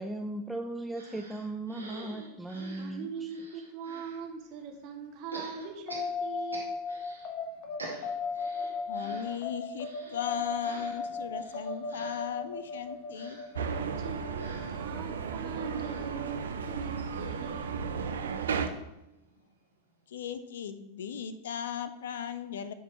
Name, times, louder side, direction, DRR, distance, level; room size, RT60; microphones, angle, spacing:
voice 1, 0.0-3.1, right 2 dB, 5° right, 3 dB, 0.4 m, -37 dB
sound 1, 0.9-4.2 5.3-7.3 7.6-19.5 19.9-20.0 20.2-20.3, right 2 dB, 80° right, 1.8 m, -49 dB
voice 2, 2.8-6.8 13.7-17.8, right 6 dB, 40° right, 4 dB, 1.3 m, -42 dB
sound 2, 5.9-16.7, left 4 dB, 45° left, 0.9 m, -37 dB
voice 3, 8.9-13.4 20.1-22.7, left 9 dB, 60° left, 12 dB, 0.5 m, -37 dB
sound 3, 13.6-18.7, right 6 dB, 65° right, 0.6 m, -34 dB
9.3 x 5.5 x 3.0 m, 0.93 s
figure-of-eight pair, 90°, 0 cm